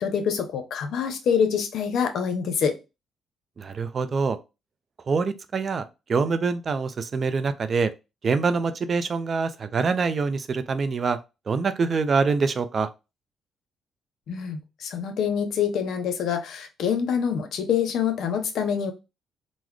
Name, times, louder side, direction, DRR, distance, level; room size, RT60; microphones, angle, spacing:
voice 1, 0.0-2.8 14.3-18.9, left 7 dB, 75° left, 0.7 m, -26 dB
voice 2, 3.6-4.4 5.1-7.9 8.2-11.2 11.5-12.9, right 4 dB, 45° right, 0.4 m, -25 dB
3.8 x 2.0 x 3.1 m
cardioid pair, 90°, 0 cm